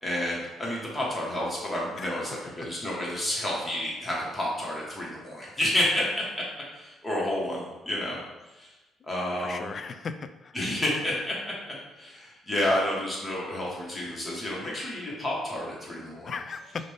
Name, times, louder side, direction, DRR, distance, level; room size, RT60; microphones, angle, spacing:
voice 1, 0.0-6.4 6.7-8.2 8.5-8.7 9.1-9.7 10.5-16.3, left 1 dB, 15° left, -5 dB, 1.4 m, -30 dB
voice 2, 9.4-10.6 16.2-16.9, left 5 dB, 45° left, 9 dB, 0.3 m, -37 dB
5.1 x 2.6 x 3.5 m, 1.0 s
cardioid pair, 110°, 0 cm